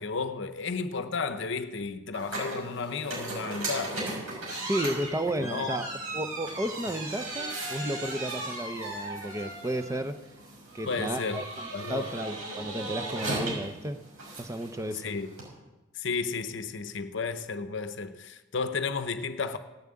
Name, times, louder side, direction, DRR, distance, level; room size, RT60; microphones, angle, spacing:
voice 1, 0.0-4.0 5.4-5.8 10.9-11.5 11.7-12.1 14.9-15.4 15.9-19.6, left 4 dB, 60° left, 0.7 m, -33 dB
sound 1, 2.1-15.5, right 2 dB, 75° right, 6.0 m, -37 dB
voice 2, 4.6-5.9 6.1-10.2 10.7-14.0 14.4-15.2, right 1 dB, 15° right, 0.5 m, -33 dB
17.5 x 7.3 x 8.7 m
head